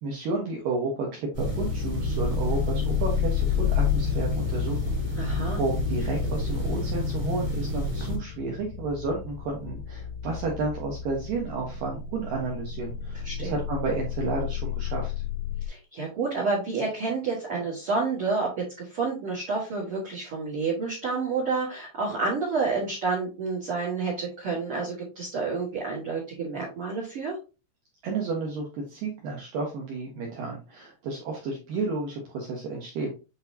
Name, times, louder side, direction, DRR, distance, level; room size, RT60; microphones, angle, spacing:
voice 1, 0.0-15.1 28.0-33.1, right 3 dB, 85° right, -1 dB, 1.9 m, -32 dB
sound 1, 1.3-8.2, left 1 dB, 5° right, 1.2 m, -30 dB
sound 2, 1.6-15.7, left 9 dB, 85° left, 2.9 m, -31 dB
voice 2, 5.1-5.6 13.2-13.6 15.6-27.4, right 4 dB, 60° right, -3 dB, 1.4 m, -29 dB
8.6 x 4.1 x 2.7 m, 0.30 s
omnidirectional pair, 5.7 m